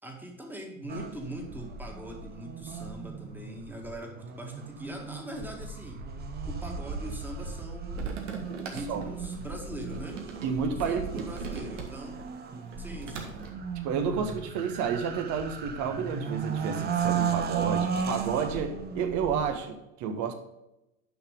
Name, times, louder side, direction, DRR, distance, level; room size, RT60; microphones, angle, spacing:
voice 1, 0.0-6.0 6.5-8.4 8.7-10.2 10.8-12.2 12.8-13.3, right 1 dB, 5° right, 1 dB, 1.9 m, -41 dB
sound 1, 0.9-19.5, right 6 dB, 25° right, 0.9 m, -35 dB
sound 2, 7.9-12.2 12.6-13.5, right 6 dB, 65° right, 1.7 m, -41 dB
voice 2, 10.4-11.3 13.8-20.3, right 6 dB, 45° right, 6 dB, 1.4 m, -30 dB
10.0 x 5.9 x 3.7 m, 0.92 s
figure-of-eight pair, 80°, 41 cm